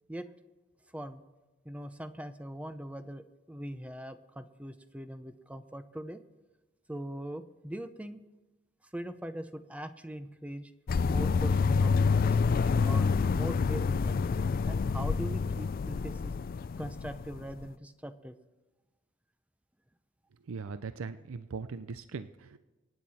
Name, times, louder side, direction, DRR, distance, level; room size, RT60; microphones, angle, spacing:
voice 1, 0.9-1.2 1.6-6.2 6.9-8.2 8.9-10.7 11.0-14.2 14.7-16.3 16.8-18.4, right 1 dB, 5° right, 10 dB, 0.5 m, -41 dB
sound 1, 10.9-17.6, left 5 dB, 45° left, 0.3 m, -27 dB
voice 2, 20.4-22.6, right 4 dB, 80° right, 12 dB, 0.5 m, -40 dB
24.5 x 9.4 x 4.2 m, 1.2 s
head